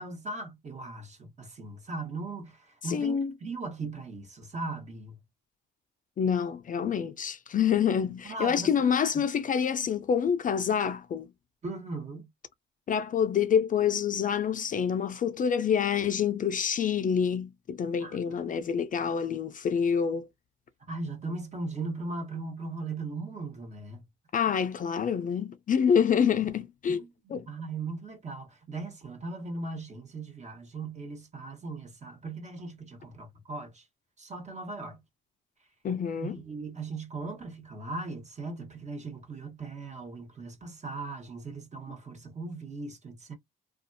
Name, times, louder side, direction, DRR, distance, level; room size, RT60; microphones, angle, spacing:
voice 1, 0.0-5.2 8.2-8.7 11.6-12.3 18.0-18.8 20.9-24.0 26.9-33.9 34.2-35.0 36.2-43.3, right 3 dB, 35° right, 1.2 m, -38 dB
voice 2, 2.8-3.3 6.2-11.3 12.9-20.3 24.3-27.0 27.3-27.5 35.8-36.4, left 7 dB, 45° left, 0.4 m, -27 dB
2.5 x 2.4 x 2.6 m
cardioid pair, 90°, 20 cm